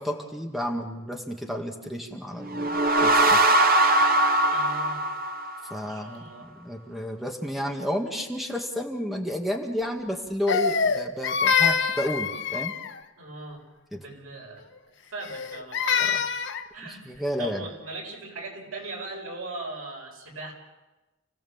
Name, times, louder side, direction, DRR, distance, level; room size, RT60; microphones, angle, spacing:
voice 1, 0.0-3.4 5.7-12.7 13.9-14.0 16.0-16.2 16.9-17.6, equal, ahead, 1 dB, 1.9 m, -31 dB
sound 1, 2.4-5.9, right 1 dB, 45° right, 1.0 m, -21 dB
voice 2, 4.5-5.0 5.8-6.5 13.2-13.6 13.9-14.7 15.1-16.3 16.7-20.5, right 2 dB, 85° right, 0 dB, 7.5 m, -39 dB
Crying sobbing, 10.5-13.0 15.2-16.7, left 6 dB, 60° left, 1.1 m, -25 dB
30.0 x 17.0 x 7.2 m, 1.1 s
head